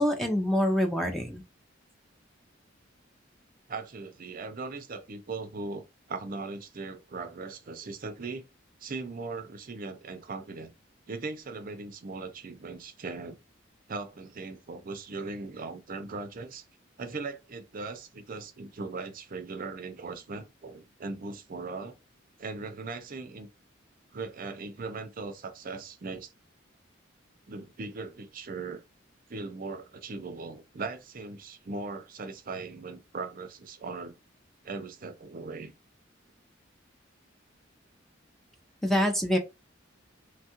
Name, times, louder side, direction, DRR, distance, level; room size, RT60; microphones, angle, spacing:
voice 1, 0.0-1.4 38.8-39.4, equal, ahead, 0.5 m, -25 dB
voice 2, 3.7-8.4 8.8-10.7 11.1-13.4 13.9-16.6 17.0-21.9 22.4-23.5 24.1-26.3 27.5-28.8 29.3-34.2 34.6-35.7, right 3 dB, 45° right, 0.5 m, -39 dB
3.1 x 2.3 x 2.9 m
head